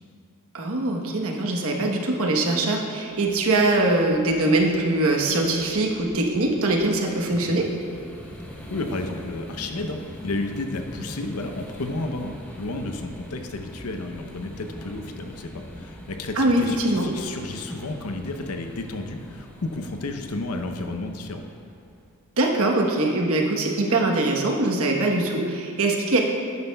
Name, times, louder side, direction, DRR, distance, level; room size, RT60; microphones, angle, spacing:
voice 1, 0.5-7.7 16.4-17.1 22.4-26.2, right 2 dB, 70° right, 1 dB, 1.1 m, -22 dB
sound 1, 3.1-22.2, equal, 5° left, 0.8 m, -42 dB
voice 2, 8.7-21.4, left 2 dB, 90° left, 5 dB, 0.8 m, -32 dB
12.0 x 9.4 x 2.3 m, 2.3 s
head